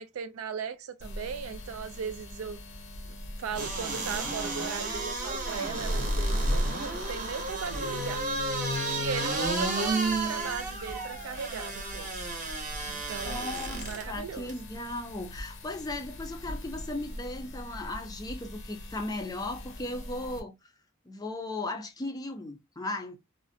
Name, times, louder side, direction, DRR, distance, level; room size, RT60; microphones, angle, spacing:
voice 1, 0.0-2.6 3.4-8.2 8.9-12.1 12.8-14.5, right 6 dB, 85° right, 0.4 m, -38 dB
sound 1, 1.0-20.4, equal, 65° left, 0.6 m, -38 dB
sound 2, 3.5-14.0 14.5-14.6, right 2 dB, 35° right, 0.7 m, -33 dB
voice 2, 13.2-20.5 21.1-23.2, left 2 dB, 20° left, 0.4 m, -36 dB
2.5 x 2.0 x 2.5 m
head